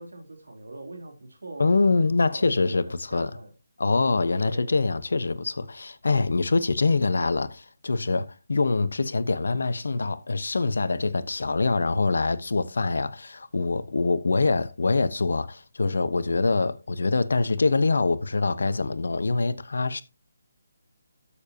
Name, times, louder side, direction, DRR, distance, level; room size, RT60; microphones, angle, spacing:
voice 1, 0.0-3.5 4.4-4.7, right 2 dB, 85° right, 3.6 m, -43 dB
voice 2, 1.6-3.3 3.8-20.0, left 3 dB, 70° left, 1.0 m, -24 dB
13.0 x 7.0 x 2.8 m
figure-of-eight pair, 155°, 0 cm